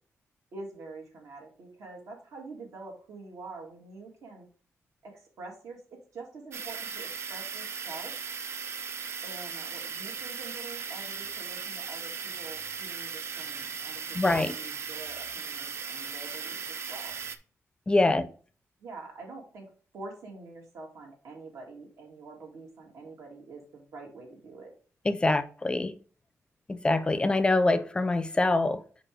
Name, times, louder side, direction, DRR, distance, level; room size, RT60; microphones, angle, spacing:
voice 1, 0.5-4.5 5.0-8.1 9.2-17.2 18.0-18.2 18.8-19.7 19.9-24.7, right 3 dB, 85° right, 2.3 m, -46 dB
sound 1, 6.5-17.4, right 6 dB, 55° right, 0.5 m, -37 dB
voice 2, 14.1-14.5 17.9-18.2 25.0-25.9 26.7-28.8, left 2 dB, 20° left, 0.4 m, -24 dB
5.1 x 4.6 x 4.8 m
wide cardioid pair, 150°, 5 cm